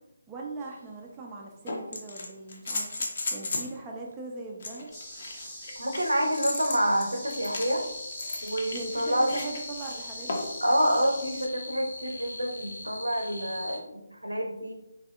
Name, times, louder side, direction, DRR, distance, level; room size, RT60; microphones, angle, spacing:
voice 1, 0.3-2.9 3.3-4.9 8.7-10.5, right 3 dB, 15° right, -1 dB, 0.3 m, -40 dB
sound 1, 0.6-0.7 1.7-3.8 4.6-9.6 10.3-10.6 12.3-12.4, left 2 dB, 45° left, 0.5 m, -35 dB
sound 2, 4.9-11.5, equal, 15° left, 0.7 m, -44 dB
voice 2, 5.8-7.8 8.4-9.5 10.6-14.7, equal, 80° right, 2 dB, 0.6 m, -27 dB
sound 3, 7.2-13.8, left 2 dB, 70° left, 0.8 m, -41 dB
3.3 x 2.7 x 2.3 m, 0.90 s
figure-of-eight pair, 150°, 0 cm